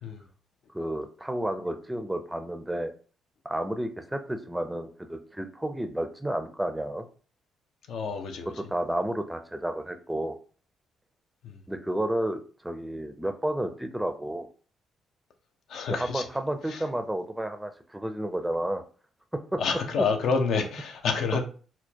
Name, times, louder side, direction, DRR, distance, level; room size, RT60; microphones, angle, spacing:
voice 1, 0.7-2.9 3.4-7.1 8.5-10.3 11.7-14.5 15.9-18.8 19.5-19.6, right 1 dB, 5° right, 0.5 m, -31 dB
voice 2, 7.9-8.5 11.4-11.6 15.7-16.2 16.7-16.8 19.6-21.4, left 5 dB, 70° left, 0.6 m, -28 dB
4.3 x 2.2 x 2.8 m
cardioid pair, 90°, 0 cm